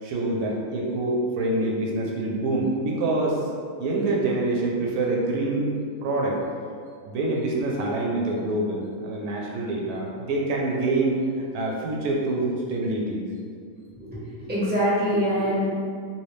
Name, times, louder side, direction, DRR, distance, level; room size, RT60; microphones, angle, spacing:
voice 1, 0.0-3.5 3.8-5.7 6.0-6.4 7.0-13.3, right 2 dB, 80° right, -2 dB, 1.1 m, -26 dB
voice 2, 14.5-15.7, equal, 10° right, -9 dB, 0.7 m, -23 dB
3.1 x 2.7 x 3.1 m, 2.2 s
omnidirectional pair, 1.6 m